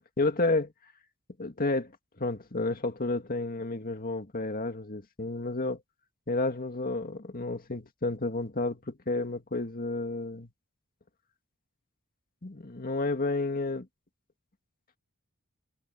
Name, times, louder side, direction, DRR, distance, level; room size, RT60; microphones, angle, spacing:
voice 1, 0.2-0.7 1.4-1.9 2.2-5.8 6.3-10.5 12.4-13.9, left 2 dB, 40° left, 2.1 m, -31 dB
head